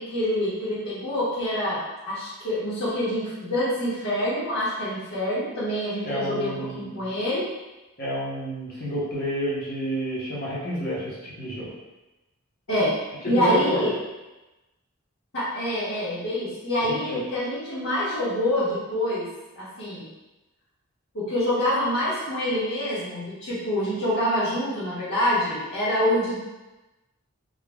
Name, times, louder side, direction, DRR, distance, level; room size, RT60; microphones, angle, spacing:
voice 1, 0.0-1.8 2.1-7.5 12.7-12.9 13.2-13.9 15.3-19.3 19.5-20.1 21.1-26.4, left 1 dB, 60° left, -15 dB, 1.4 m, -26 dB
voice 2, 6.0-7.1 8.0-11.7 13.2-13.9 16.8-17.2, equal, 45° left, -7 dB, 1.1 m, -29 dB
3.8 x 2.5 x 3.5 m, 1.1 s
head